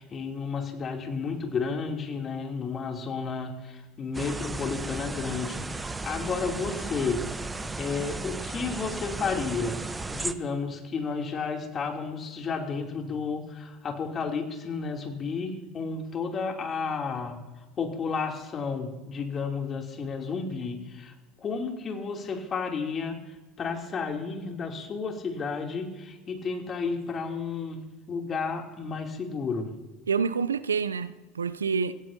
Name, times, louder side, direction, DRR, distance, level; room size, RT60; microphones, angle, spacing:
voice 1, 0.0-7.2 7.8-9.8 10.1-17.4 17.8-23.2 23.6-27.8 28.1-29.7, left 5 dB, 35° left, 3.0 m, -32 dB
sound 1, 4.1-10.3, right 3 dB, 15° right, 1.0 m, -35 dB
voice 2, 30.1-31.9, right 5 dB, 85° right, 0.5 m, -27 dB
26.5 x 16.0 x 2.8 m
hypercardioid pair, 70°, 0 cm